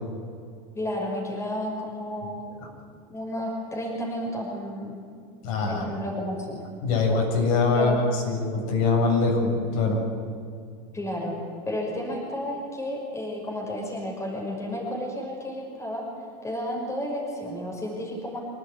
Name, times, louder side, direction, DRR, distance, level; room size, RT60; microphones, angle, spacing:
voice 1, 0.7-2.4 3.1-4.9 5.6-6.6 7.7-8.0 10.9-11.3 11.7-16.0 16.4-18.4, left 1 dB, 15° left, -1 dB, 6.0 m, -32 dB
voice 2, 5.4-5.8 6.8-10.0, left 3 dB, 65° left, 1 dB, 7.7 m, -23 dB
25.5 x 18.5 x 9.6 m, 2.3 s
supercardioid pair, 160°, 19 cm